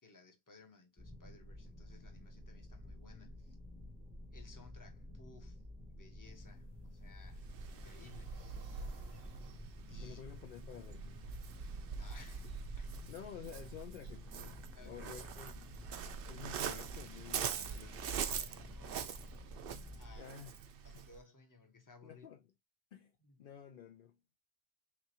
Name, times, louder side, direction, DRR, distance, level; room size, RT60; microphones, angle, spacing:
voice 1, 0.0-3.6 4.3-5.6 5.9-8.4 9.9-10.2 12.0-13.0 14.7-15.3 17.4-19.3 19.9-20.3 20.8-22.3 23.2-23.4, left 3 dB, 20° left, 0.9 m, -60 dB
sound 1, 1.0-20.2, left 1 dB, 10° right, 0.5 m, -52 dB
sound 2, 6.3-11.3, right 4 dB, 85° right, 1.4 m, -65 dB
Waves surf, 7.3-21.2, right 7 dB, 65° right, 0.7 m, -44 dB
voice 2, 10.0-11.3 13.1-15.7 16.3-17.9 20.1-20.5 22.0-22.4 22.9-24.4, left 9 dB, 60° left, 0.7 m, -51 dB
5.9 x 2.4 x 2.8 m
omnidirectional pair, 1.1 m